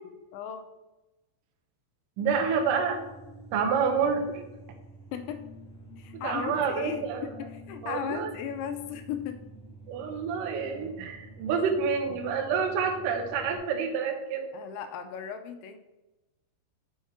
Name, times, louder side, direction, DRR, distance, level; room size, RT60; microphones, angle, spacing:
voice 1, 0.3-0.7 5.1-5.5 6.0-7.1 7.4-9.4 14.5-15.8, left 8 dB, 85° left, 7 dB, 2.7 m, -36 dB
sound 1, 2.2-13.6, right 1 dB, 55° left, 0.9 m, -48 dB
voice 2, 2.2-3.0 3.5-4.4 6.1-7.3 7.8-8.3 9.9-14.5, right 6 dB, 85° right, 3 dB, 1.9 m, -28 dB
6.4 x 5.8 x 5.9 m, 1.0 s
omnidirectional pair, 5.5 m